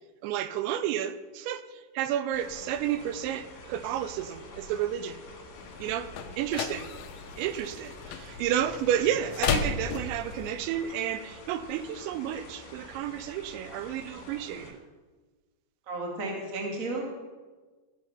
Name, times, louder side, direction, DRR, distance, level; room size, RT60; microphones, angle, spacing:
voice 1, 0.2-5.2 5.8-6.1 6.4-6.9 7.4-14.8, right 10 dB, 85° right, 13 dB, 2.8 m, -31 dB
sound 1, 2.3-14.7, left 2 dB, 50° left, 2.9 m, -48 dB
sound 2, 5.5-10.5, left 6 dB, 80° left, 2.3 m, -34 dB
voice 2, 15.9-17.0, right 2 dB, 65° right, 0 dB, 0.8 m, -33 dB
15.0 x 6.3 x 5.7 m, 1.3 s
omnidirectional pair, 5.2 m